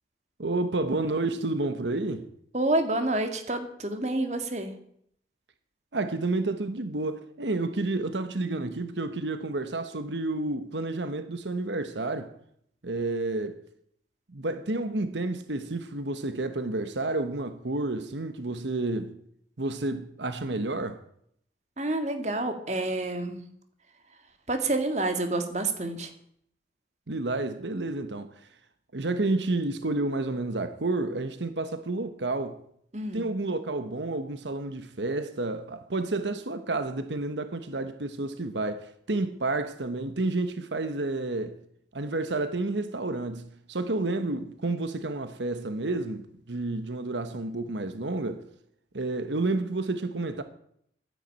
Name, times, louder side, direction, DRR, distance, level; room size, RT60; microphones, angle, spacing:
voice 1, 0.4-2.3 5.9-12.3 12.8-13.6 14.3-19.2 19.6-21.0 27.1-28.4 28.9-32.6 33.1-41.6 41.9-48.4 48.9-50.4, right 2 dB, 90° right, 1.1 m, -30 dB
voice 2, 2.5-4.7 21.8-23.4 24.5-26.1 32.9-33.2, right 2 dB, 40° right, 2.2 m, -28 dB
12.5 x 10.5 x 8.8 m
head